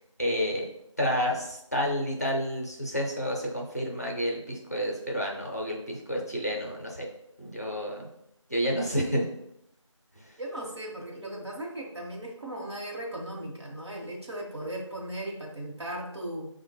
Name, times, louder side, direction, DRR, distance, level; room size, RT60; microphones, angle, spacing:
voice 1, 0.2-0.7 1.0-7.1 7.4-8.1 8.5-9.3, equal, 30° left, -1 dB, 0.5 m, -30 dB
voice 2, 10.4-16.5, right 1 dB, 55° right, -2 dB, 0.9 m, -37 dB
5.0 x 2.1 x 3.1 m, 0.80 s
figure-of-eight pair, 175°, 16 cm